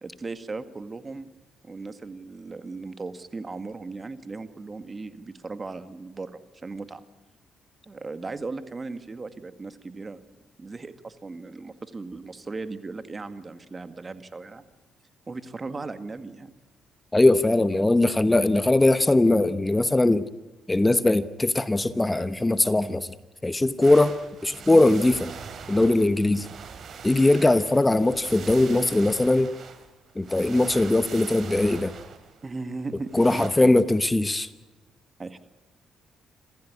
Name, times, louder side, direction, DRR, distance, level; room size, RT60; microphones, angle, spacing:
voice 1, 0.0-1.3 1.6-7.0 7.9-10.2 10.6-14.6 15.3-16.5 32.4-33.7 35.2-35.4, right 3 dB, 30° right, 11 dB, 1.9 m, -37 dB
voice 2, 17.1-20.3 20.7-23.1 23.4-24.2 24.4-25.3 25.7-26.5 27.0-29.5 30.1-31.9 33.1-34.5, left 2 dB, 15° left, 14 dB, 1.0 m, -20 dB
sound 1, 23.8-33.5, right 6 dB, 60° right, 3.0 m, -42 dB
27.5 x 15.0 x 9.7 m, 1.2 s
cardioid pair, 90°, 0 cm